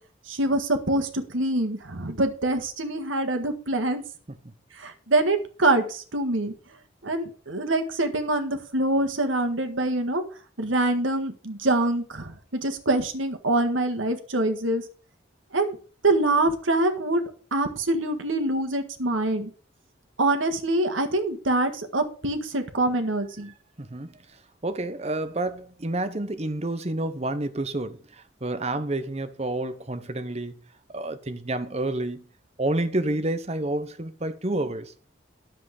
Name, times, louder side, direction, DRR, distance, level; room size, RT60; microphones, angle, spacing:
voice 1, 0.3-4.0 4.8-6.5 7.0-10.2 10.6-14.8 15.5-15.8 16.0-17.2 17.5-19.5 20.2-23.5, right 2 dB, 85° right, 1.6 m, -25 dB
voice 2, 23.8-24.1 24.6-28.0 28.4-30.6 30.9-32.3 32.6-34.9, right 2 dB, 35° right, 0.9 m, -29 dB
10.5 x 7.6 x 5.0 m
head